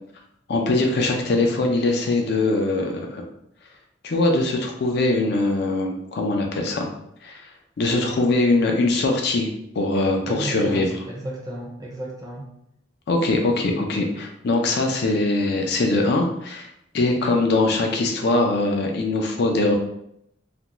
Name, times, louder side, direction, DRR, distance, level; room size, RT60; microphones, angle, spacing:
voice 1, 0.5-3.2 4.0-6.9 7.2-7.4 7.8-9.5 9.8-10.9 13.1-16.7 16.9-19.7, left 2 dB, 55° left, 2 dB, 0.4 m, -22 dB
voice 2, 10.2-12.4, right 1 dB, 20° right, -2 dB, 0.5 m, -33 dB
2.4 x 2.1 x 2.9 m, 0.75 s
head